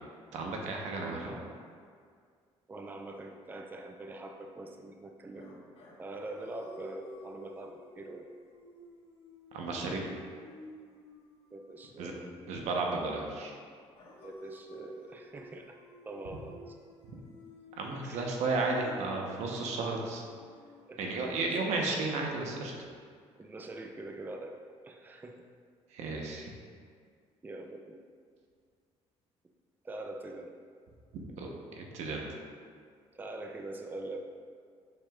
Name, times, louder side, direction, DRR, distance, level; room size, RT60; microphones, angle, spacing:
voice 1, 0.3-1.3 9.5-10.0 12.0-12.1 12.5-13.5 17.8-20.3 21.0-22.7 25.9-26.5 31.4-32.2, right 3 dB, 75° right, 0 dB, 1.0 m, -33 dB
voice 2, 1.0-1.7 2.7-5.6 6.0-8.3 11.5-12.3 14.2-15.8 16.0-16.8 18.0-18.4 20.9-21.5 23.4-24.6 24.8-25.4 27.4-28.0 29.8-30.5 33.1-34.2, right 2 dB, 15° right, 4 dB, 0.4 m, -44 dB
sound 1, 5.3-13.4 14.0-22.0, equal, 55° left, 1.3 m, -53 dB
6.6 x 6.3 x 2.4 m, 2.1 s
cardioid pair, 100°, 12 cm